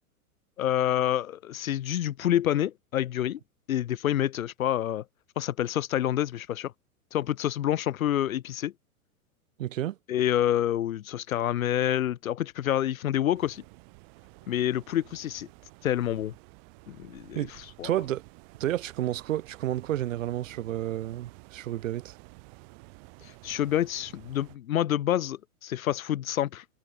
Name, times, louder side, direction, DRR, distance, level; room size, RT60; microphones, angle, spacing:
voice 1, 0.6-3.4 3.7-5.0 5.4-6.7 7.1-8.7 10.1-13.6 14.5-15.5 15.8-16.3 16.9-17.5 17.8-17.9 23.4-26.6, left 11 dB, 65° left, 0.6 m, -27 dB
voice 2, 9.6-10.0 17.3-17.5 17.8-18.2 18.6-22.1, right 13 dB, 60° right, 0.6 m, -30 dB
sound 1, 13.3-24.6, right 39 dB, 40° right, 5.4 m, -52 dB
figure-of-eight pair, 100°, 44 cm